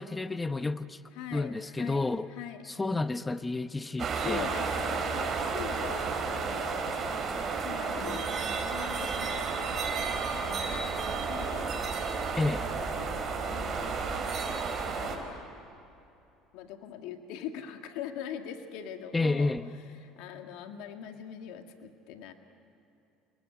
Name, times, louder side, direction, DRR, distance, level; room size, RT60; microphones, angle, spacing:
voice 1, 0.0-1.0 1.3-2.3 2.6-4.5 12.4-12.7 19.1-19.7, left 3 dB, 15° left, 12 dB, 0.8 m, -30 dB
voice 2, 1.1-2.7 4.2-7.3 7.6-11.7 12.5-14.3 15.0-15.5 16.5-19.5 20.0-22.3, left 9 dB, 75° left, 5 dB, 1.9 m, -42 dB
sound 1, 4.0-15.2, right 5 dB, 40° right, 4.5 m, -32 dB
28.5 x 20.5 x 9.6 m, 2.7 s
supercardioid pair, 100°, 0 cm